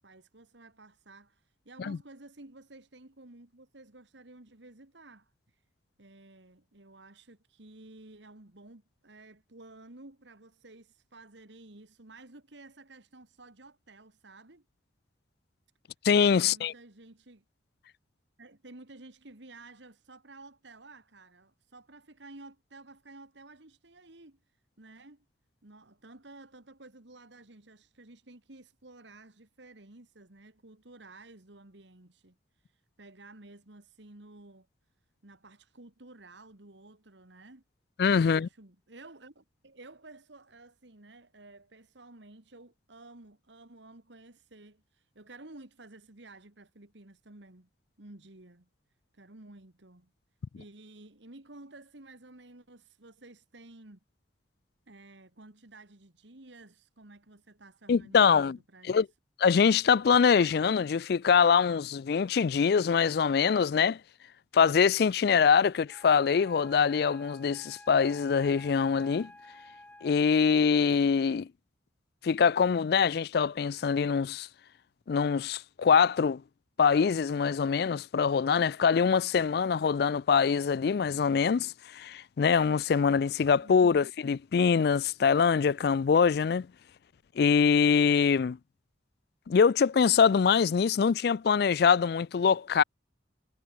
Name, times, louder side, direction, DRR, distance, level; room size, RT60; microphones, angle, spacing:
voice 1, 0.0-5.6 6.0-14.7 16.3-17.4 18.4-24.4 24.8-25.3 25.6-32.4 32.6-34.7 35.2-37.6 38.2-47.7 48.0-48.7 49.1-50.1 50.6-54.0 54.9-59.1 83.6-84.1, right 2 dB, 70° right, 2.1 m, -53 dB
voice 2, 16.0-16.7 38.0-38.5 57.9-58.6 58.9-59.1 59.4-64.0 64.5-69.3 70.0-71.5 72.2-74.5 75.1-76.4 76.8-86.7 87.4-88.6 89.5-92.8, left 6 dB, 55° left, 0.3 m, -24 dB
Wind instrument woodwind instrument, 65.9-70.5, left 1 dB, 10° left, 1.4 m, -52 dB
head